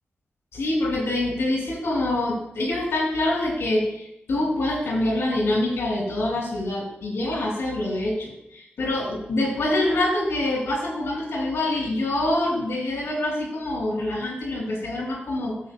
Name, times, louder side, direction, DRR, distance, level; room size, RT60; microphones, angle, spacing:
voice 1, 0.5-15.6, left 1 dB, 85° left, -1 dB, 2.9 m, -25 dB
15.0 x 6.4 x 2.3 m, 0.81 s
cardioid pair, 45°, 4 cm